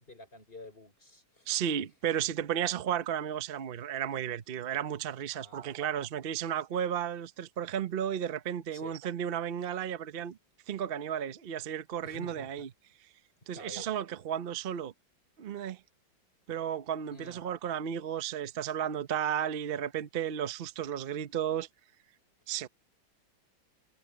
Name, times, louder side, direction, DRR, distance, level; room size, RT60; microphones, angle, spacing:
voice 1, 0.1-1.5 5.3-6.1 8.7-9.0 12.0-12.6 13.4-13.9 17.1-17.4, left 2 dB, 25° left, 6.4 m, -50 dB
voice 2, 1.5-10.4 10.7-12.7 13.5-14.9 15.4-15.8 16.5-21.7 22.5-22.7, right 9 dB, 65° right, 0.5 m, -33 dB
omnidirectional pair, 2.2 m